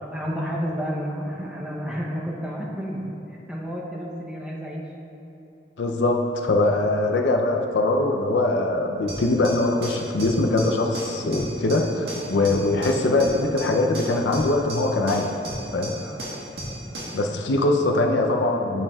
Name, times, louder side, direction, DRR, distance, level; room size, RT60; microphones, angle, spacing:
voice 1, 0.0-3.1 3.5-4.9 16.0-16.3 17.1-17.2, equal, 5° right, -4 dB, 0.7 m, -31 dB
voice 2, 5.8-15.3 15.7-15.9 17.1-18.8, left 2 dB, 80° left, 3 dB, 0.5 m, -22 dB
sound 1, 9.1-17.2, right 1 dB, 70° right, 1.3 m, -35 dB
9.7 x 5.3 x 2.3 m, 3.0 s
head